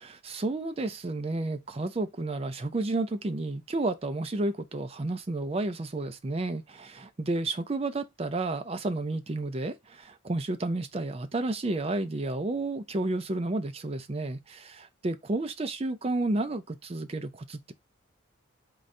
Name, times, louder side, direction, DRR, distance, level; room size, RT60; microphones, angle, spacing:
voice 1, 0.0-17.7, right 2 dB, 30° right, 0.4 m, -31 dB
3.8 x 2.6 x 3.2 m
head